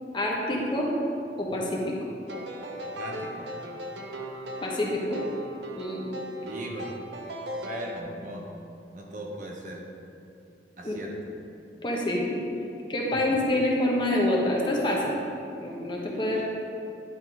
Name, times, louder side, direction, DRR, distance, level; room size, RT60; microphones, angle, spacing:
voice 1, 0.1-0.9 1.4-2.0 4.6-5.2 5.7-6.0 10.8-11.0 11.8-12.4 12.9-15.2 15.6-16.4, left 1 dB, 25° left, -2 dB, 0.9 m, -26 dB
sound 1, 2.3-8.0, right 1 dB, 80° right, 0.7 m, -38 dB
voice 2, 2.8-3.5 6.4-7.0 7.6-8.5 8.9-9.8 10.8-11.3 13.1-13.4, right 1 dB, 45° right, -1 dB, 0.9 m, -38 dB
10.5 x 3.8 x 4.6 m, 2.6 s
head